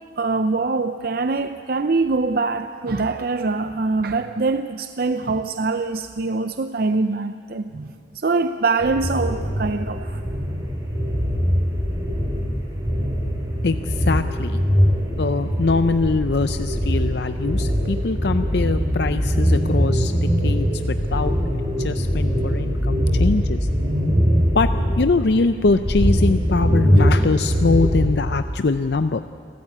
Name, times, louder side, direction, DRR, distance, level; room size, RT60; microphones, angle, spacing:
voice 1, 0.2-10.2 17.8-18.0, right 3 dB, 50° right, 0.5 m, -24 dB
sound 1, 8.8-28.3, equal, 20° right, 3.9 m, -22 dB
voice 2, 13.6-14.6 15.2-20.1 20.4-21.4 21.8-23.7 24.5-24.7 25.0-29.2, left 3 dB, 60° left, 0.5 m, -22 dB
29.0 x 13.5 x 8.6 m
head